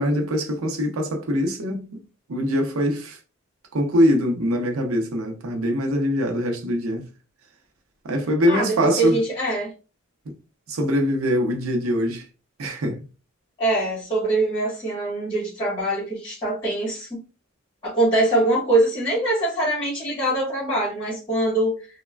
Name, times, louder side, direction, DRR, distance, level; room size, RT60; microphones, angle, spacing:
voice 1, 0.0-2.0 2.3-3.2 3.7-7.1 8.0-9.2 10.3-10.4 10.7-12.2 12.6-13.0, equal, 80° right, 0.6 m, -23 dB
voice 2, 8.5-9.7 13.6-17.2 17.8-21.9, right 2 dB, 20° left, 1.1 m, -23 dB
3.1 x 2.1 x 2.2 m
head